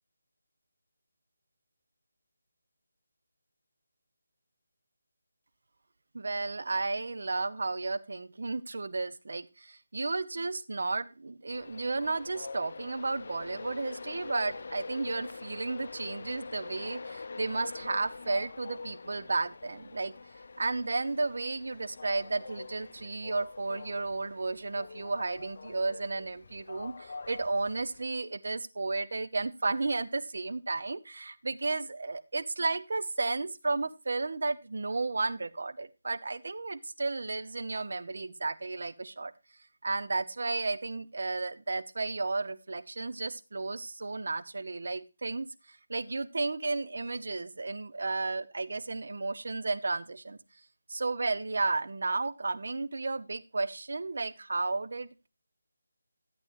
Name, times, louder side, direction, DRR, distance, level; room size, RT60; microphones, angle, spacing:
voice 1, 6.1-20.1 20.6-39.3 39.8-50.4 50.9-55.3, right 3 dB, 65° right, 13 dB, 0.9 m, -33 dB
Train, 11.5-28.1, left 4 dB, 55° left, 0.7 m, -45 dB
13.5 x 8.2 x 3.1 m, 0.29 s
figure-of-eight pair, 160°, 0 cm